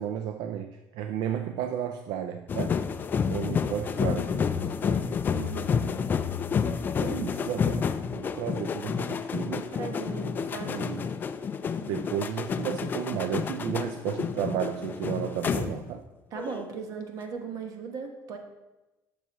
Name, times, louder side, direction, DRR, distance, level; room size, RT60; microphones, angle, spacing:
voice 1, 0.0-2.8 3.3-5.5 7.0-9.7 10.6-11.1 11.8-16.0, right 9 dB, 75° right, 8 dB, 0.4 m, -33 dB
sound 1, 2.5-16.1 16.4-16.7, left 6 dB, 25° left, 0.3 m, -30 dB
voice 2, 5.3-5.7 9.6-10.9 16.3-18.4, right 5 dB, 55° right, 4 dB, 1.1 m, -37 dB
11.0 x 6.8 x 3.0 m, 1.1 s
cardioid pair, 160°, 7 cm